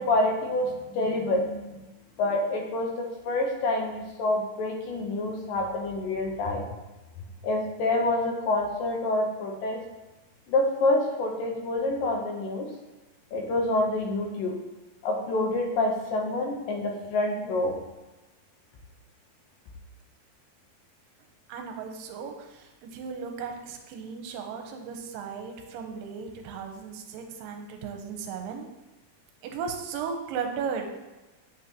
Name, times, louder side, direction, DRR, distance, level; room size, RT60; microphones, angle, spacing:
voice 1, 0.0-1.8 2.2-6.7 7.4-9.8 10.5-12.7 13.3-14.6 15.0-17.8, left 2 dB, 75° left, 1 dB, 2.4 m, -27 dB
voice 2, 21.5-28.7 29.4-30.9, right 6 dB, 75° right, 4 dB, 2.3 m, -36 dB
7.9 x 5.5 x 2.9 m, 1.1 s
omnidirectional pair, 4.3 m